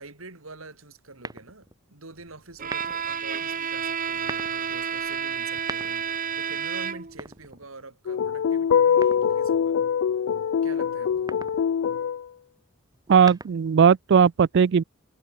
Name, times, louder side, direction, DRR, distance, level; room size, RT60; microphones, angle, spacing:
voice 1, 0.0-9.8 10.6-11.3, right 3 dB, 85° right, 3.2 m, -46 dB
sound 1, 1.2-1.8 2.6-3.2 4.1-4.6 5.4-6.2 7.1-8.0 9.0-9.6 11.1-11.6 12.9-13.8, right 3 dB, 20° right, 2.0 m, -40 dB
Bowed string instrument, 2.6-7.3, right 7 dB, 40° right, 1.3 m, -30 dB
sound 2, 8.1-12.2, left 7 dB, 65° left, 0.3 m, -23 dB
voice 2, 13.1-14.8, right 7 dB, 60° right, 0.4 m, -18 dB
head